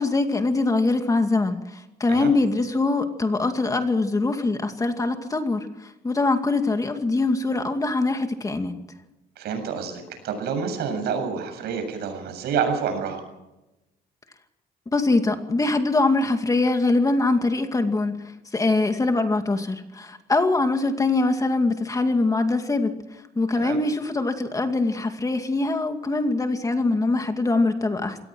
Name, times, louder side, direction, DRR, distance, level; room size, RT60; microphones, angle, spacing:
voice 1, 0.0-8.7 14.9-18.2 18.5-22.9 23.4-28.2, left 3 dB, 20° left, 6 dB, 2.4 m, -23 dB
voice 2, 9.4-13.2 23.5-23.8, right 6 dB, 75° right, 7 dB, 7.5 m, -28 dB
25.0 x 18.5 x 6.3 m, 0.97 s
cardioid pair, 110°, 17 cm